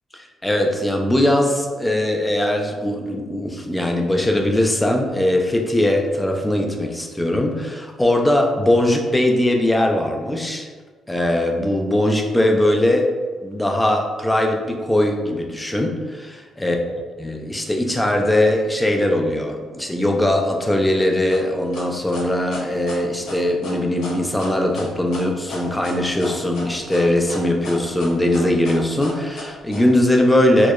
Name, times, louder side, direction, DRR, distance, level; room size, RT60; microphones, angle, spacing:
voice 1, 0.4-10.7 11.1-13.1 13.4-30.7, left 1 dB, 10° left, 2 dB, 0.3 m, -20 dB
sound 1, 21.3-29.8, left 2 dB, 80° left, 0.6 m, -35 dB
2.9 x 2.0 x 2.2 m, 1.4 s
cardioid pair, 90°, 0 cm